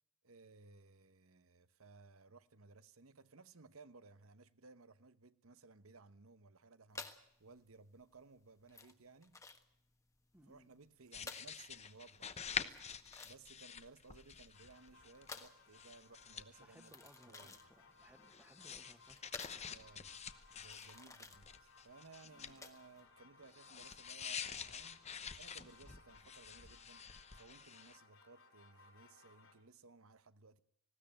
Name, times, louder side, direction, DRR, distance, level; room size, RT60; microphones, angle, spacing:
voice 1, 0.2-9.4 10.5-12.8 13.2-16.9 17.3-17.7 19.6-20.2 20.6-25.0 25.4-27.1 27.3-30.6, right 3 dB, 75° right, 1.0 m, -60 dB
sound 1, 6.9-23.0, left 3 dB, 15° left, 1.4 m, -55 dB
voice 2, 10.3-10.7 16.6-19.4 22.2-22.6, right 1 dB, 10° right, 1.5 m, -64 dB
sound 2, 11.1-15.5 15.7-16.9 18.0-21.0 21.3-22.5 23.4-28.0, left 7 dB, 30° left, 0.9 m, -47 dB
sound 3, 14.5-29.5, left 3 dB, 70° left, 4.5 m, -65 dB
19.5 x 17.0 x 9.0 m
head